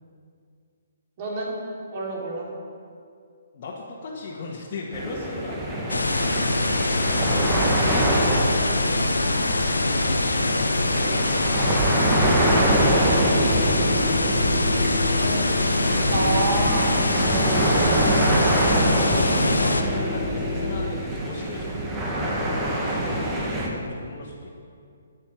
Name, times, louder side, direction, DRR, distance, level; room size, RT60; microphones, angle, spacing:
voice 1, 1.2-1.5 1.9-2.5 12.0-12.3 16.1-17.0 17.4-18.9, right 2 dB, 40° right, -3 dB, 3.7 m, -30 dB
voice 2, 3.5-6.3 7.6-11.5 12.0-13.5 14.2-15.3 19.0-24.5, left 3 dB, 45° left, -5 dB, 1.8 m, -37 dB
sound 1, 4.9-23.7, right 1 dB, 15° right, 2.0 m, -25 dB
sound 2, 5.9-19.8, left 2 dB, 90° left, 1.1 m, -24 dB
sound 3, 12.7-20.9, left 2 dB, 70° left, 1.6 m, -31 dB
10.5 x 8.8 x 7.5 m, 2.3 s
figure-of-eight pair, 140°, 0 cm